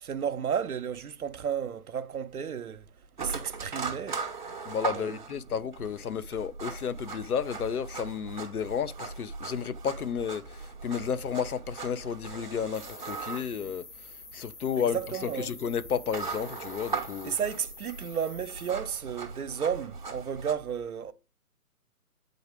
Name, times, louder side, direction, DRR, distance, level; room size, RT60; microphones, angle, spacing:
voice 1, 0.0-2.9 3.2-4.2 4.9-5.2 14.9-15.5 17.2-21.1, right 8 dB, 70° right, 0.8 m, -33 dB
sound 1, 3.2-20.5, right 4 dB, 30° right, 0.8 m, -39 dB
voice 2, 4.7-13.8 14.3-17.4, left 7 dB, 70° left, 0.7 m, -32 dB
sound 2, 12.7-18.7, left 3 dB, 40° left, 1.3 m, -48 dB
8.4 x 3.9 x 3.5 m
hypercardioid pair, 160°, 45 cm